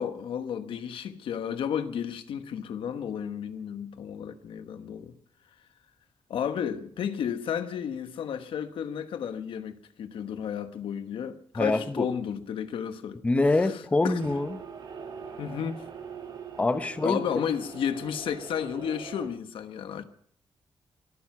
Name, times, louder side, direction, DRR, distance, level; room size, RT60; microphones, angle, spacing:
voice 1, 0.0-5.1 6.3-13.2 13.6-14.2 15.4-15.9 17.0-20.0, left 8 dB, 90° left, 1.2 m, -32 dB
voice 2, 11.6-12.1 13.2-14.6 16.6-17.2, left 2 dB, 15° left, 0.9 m, -25 dB
sound 1, 14.2-19.3, right 6 dB, 60° right, 2.2 m, -42 dB
23.0 x 9.2 x 6.0 m
wide cardioid pair, 165°, 9 cm